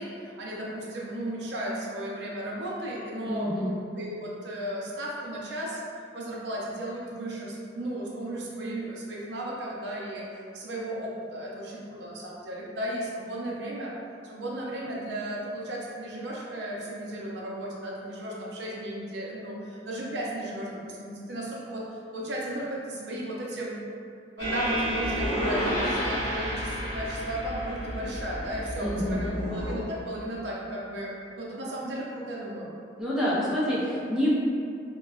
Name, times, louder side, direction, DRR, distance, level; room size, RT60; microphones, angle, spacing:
voice 1, 0.0-3.5 3.9-5.8 6.1-10.2 10.5-13.9 14.3-21.8 22.1-23.8 24.4-32.7, right 1 dB, 70° right, -4 dB, 0.5 m, -35 dB
voice 2, 3.2-3.7 28.8-29.5 33.0-34.3, left 1 dB, 5° right, -9 dB, 0.5 m, -28 dB
sound 1, 24.4-29.7, equal, 30° left, 1.3 m, -31 dB
3.7 x 2.2 x 2.3 m, 2.4 s
head